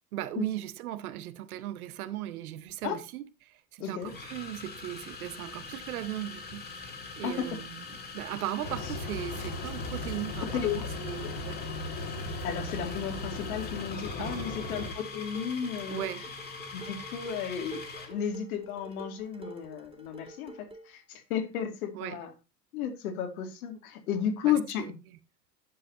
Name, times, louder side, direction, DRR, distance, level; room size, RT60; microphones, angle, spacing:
voice 1, 0.1-7.8 8.1-11.6 14.2-14.5 15.9-16.2 21.9-22.2 24.4-24.9, right 13 dB, 60° right, 1.1 m, -38 dB
sound 1, 2.7-2.9 4.0-18.2, left 4 dB, 20° left, 2.5 m, -43 dB
voice 2, 3.8-4.1 7.2-7.5 10.5-10.8 11.2-11.3 12.4-16.1 16.7-22.3 22.7-24.9, left 8 dB, 60° left, 2.5 m, -33 dB
sound 2, 8.6-14.9, left 2 dB, 40° left, 2.3 m, -37 dB
Dishes pots and pans, 14.3-20.9, right 1 dB, 10° right, 2.3 m, -48 dB
11.0 x 7.5 x 2.8 m
figure-of-eight pair, 85°, 50 cm